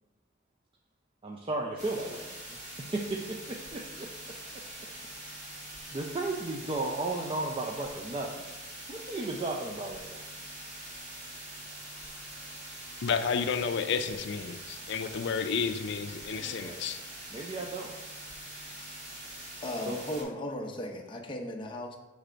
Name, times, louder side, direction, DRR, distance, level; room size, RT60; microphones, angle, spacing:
voice 1, 1.2-2.3 2.9-4.1 5.2-5.4 5.9-8.3 8.9-10.3 16.3-16.8 17.3-17.9 19.9-20.0, right 2 dB, 30° right, -1 dB, 0.5 m, -34 dB
sound 1, 1.8-20.2, right 1 dB, 60° right, 1.9 m, -44 dB
voice 2, 13.0-17.0, left 6 dB, 65° left, 8 dB, 0.4 m, -31 dB
voice 3, 19.6-22.0, left 1 dB, 25° left, 0 dB, 0.7 m, -36 dB
6.4 x 3.3 x 5.0 m, 1.1 s
head